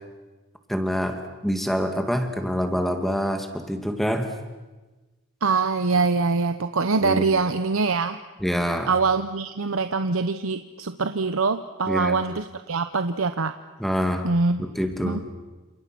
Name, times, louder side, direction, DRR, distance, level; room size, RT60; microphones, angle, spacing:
voice 1, 0.7-4.3 7.0-7.2 8.4-8.9 11.9-12.2 13.8-14.3 14.6-15.2, equal, ahead, 5 dB, 2.0 m, -26 dB
voice 2, 5.4-8.2 8.9-13.5 14.2-14.7 15.0-15.2, right 4 dB, 80° right, 9 dB, 0.9 m, -24 dB
29.0 x 27.5 x 6.1 m, 1.2 s
head